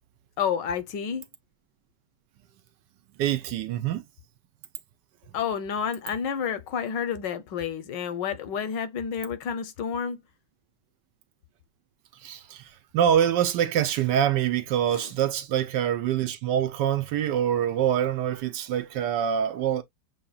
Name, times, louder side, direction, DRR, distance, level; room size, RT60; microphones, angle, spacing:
voice 1, 0.4-1.3 5.3-10.2, left 7 dB, 75° left, 1.4 m, -30 dB
voice 2, 3.2-4.0 12.2-19.8, right 10 dB, 75° right, 1.2 m, -25 dB
6.9 x 2.8 x 2.3 m
omnidirectional pair, 2.0 m